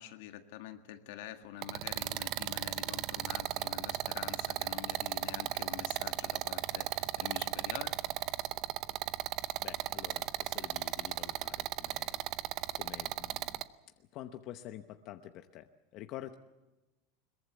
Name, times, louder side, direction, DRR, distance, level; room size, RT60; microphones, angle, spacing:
voice 1, 0.0-8.0, left 12 dB, 75° left, 7 dB, 1.8 m, -46 dB
sound 1, 1.6-13.6, right 15 dB, 45° right, 0.7 m, -36 dB
voice 2, 9.6-12.5 12.7-13.6 14.1-15.7 15.9-16.4, left 13 dB, 45° left, 7 dB, 0.9 m, -48 dB
22.5 x 21.5 x 7.2 m, 1.1 s
supercardioid pair, 155°, 0 cm